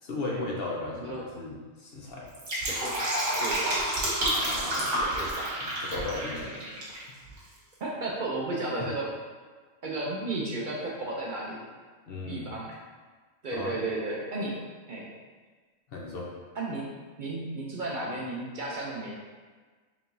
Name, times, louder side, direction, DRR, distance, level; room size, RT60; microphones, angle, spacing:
voice 1, 0.0-2.3 4.3-5.0 5.6-6.5 8.8-8.9 12.1-12.5 13.5-13.8 15.9-16.3, left 2 dB, 55° left, -2 dB, 0.7 m, -36 dB
Fill (with liquid), 2.2-7.0 7.3-7.4, right 1 dB, 80° right, 1.6 m, -29 dB
voice 2, 3.4-3.9 5.0-5.5 6.3-6.8 7.8-9.1 9.8-11.6 12.2-12.8 13.4-14.5 14.9-15.1 16.5-16.9 17.2-19.1, right 2 dB, 55° right, -4 dB, 0.5 m, -34 dB
4.7 x 3.4 x 2.6 m, 1.4 s
omnidirectional pair, 1.4 m